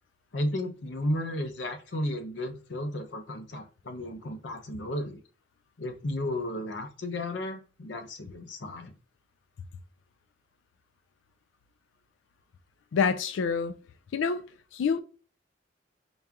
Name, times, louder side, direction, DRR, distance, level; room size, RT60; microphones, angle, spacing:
voice 1, 0.3-5.2 5.8-9.0, left 1 dB, 70° left, 0.7 m, -33 dB
voice 2, 12.9-13.7 14.1-14.4 14.7-15.0, left 6 dB, 85° left, 0.3 m, -26 dB
4.2 x 2.2 x 3.5 m
head